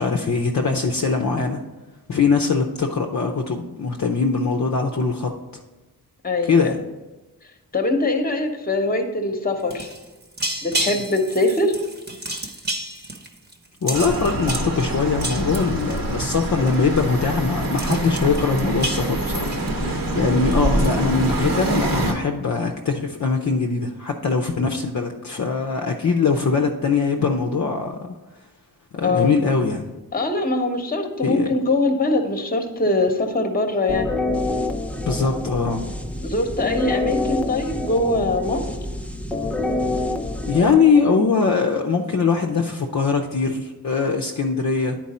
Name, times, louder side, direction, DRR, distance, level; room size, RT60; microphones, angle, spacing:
voice 1, 0.0-1.6 2.1-5.3 6.5-6.8 13.8-28.1 29.0-29.9 31.2-31.5 35.1-35.9 40.5-45.0, left 4 dB, 50° left, 2 dB, 0.6 m, -22 dB
voice 2, 6.2-6.7 7.7-9.9 10.6-11.7 29.0-29.3 30.1-34.1 36.2-38.6, left 2 dB, 25° left, 5 dB, 1.0 m, -22 dB
sound 1, 9.6-16.4 16.7-17.0 17.3-17.4 17.6-20.1 20.5-20.8, right 1 dB, 25° right, 1.0 m, -31 dB
sound 2, 13.9-22.1, right 1 dB, 65° right, 1.3 m, -25 dB
sound 3, 33.9-41.5, left 2 dB, 5° left, 0.5 m, -27 dB
10.5 x 4.6 x 4.2 m, 1.1 s
wide cardioid pair, 115°, 38 cm